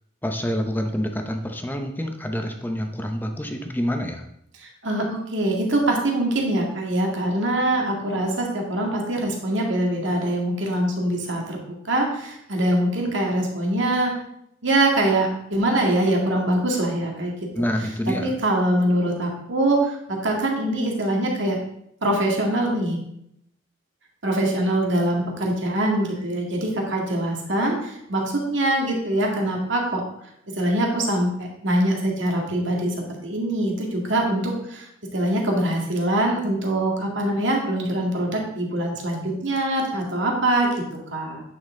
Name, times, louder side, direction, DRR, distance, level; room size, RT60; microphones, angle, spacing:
voice 1, 0.2-4.2 17.5-18.3, equal, 10° left, 4 dB, 0.7 m, -27 dB
voice 2, 4.6-11.6 11.9-14.1 14.6-17.3 18.1-21.6 22.0-23.0 24.2-30.0 30.5-32.9 33.2-40.7 41.1-41.4, right 1 dB, 65° right, 0 dB, 2.0 m, -23 dB
9.5 x 6.2 x 3.7 m, 0.75 s
head